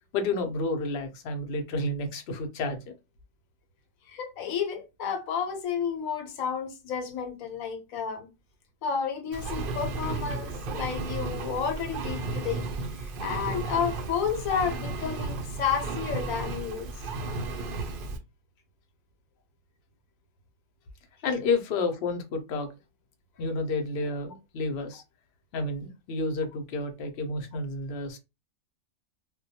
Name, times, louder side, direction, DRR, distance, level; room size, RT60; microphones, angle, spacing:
voice 1, 0.1-2.9 21.2-22.7 23.4-25.0 25.5-28.2, left 3 dB, 60° left, 0.7 m, -30 dB
voice 2, 4.1-8.3 8.8-12.7 13.0-16.9, left 7 dB, 80° left, 1.1 m, -31 dB
Engine, 9.3-18.2, right 3 dB, 70° right, 0.5 m, -34 dB
2.2 x 2.2 x 2.7 m
omnidirectional pair, 1.4 m